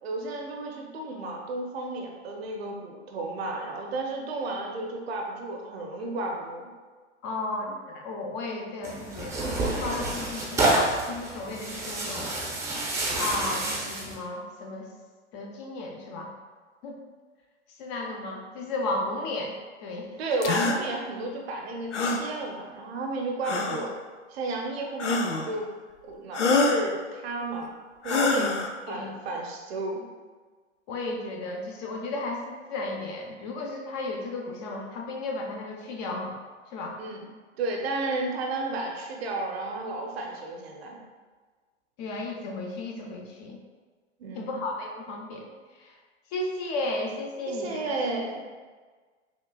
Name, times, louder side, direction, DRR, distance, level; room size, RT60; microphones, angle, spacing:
voice 1, 0.0-6.7 20.2-24.0 24.3-25.7 26.0-27.7 28.0-28.6 28.9-30.0 37.0-37.3 37.6-41.0 44.2-44.6 47.5-48.4, right 2 dB, 60° right, 1 dB, 0.8 m, -32 dB
voice 2, 7.2-12.3 13.1-14.9 15.3-16.3 16.8-17.0 17.8-19.5 19.8-20.1 23.5-23.8 28.9-29.1 30.9-36.4 36.7-37.0 42.0-43.6 44.3-45.5 45.8-45.9 46.3-47.9, left 2 dB, 35° left, 1 dB, 0.7 m, -34 dB
Tearing, 8.8-14.2, right 2 dB, 10° right, 0.6 m, -28 dB
sound 1, 20.4-20.8 21.9-22.3 23.4-23.9 25.0-25.5 26.3-26.9 28.0-28.7, left 3 dB, 85° left, 0.5 m, -25 dB
5.9 x 2.4 x 2.2 m, 1.4 s
figure-of-eight pair, 105°, 35 cm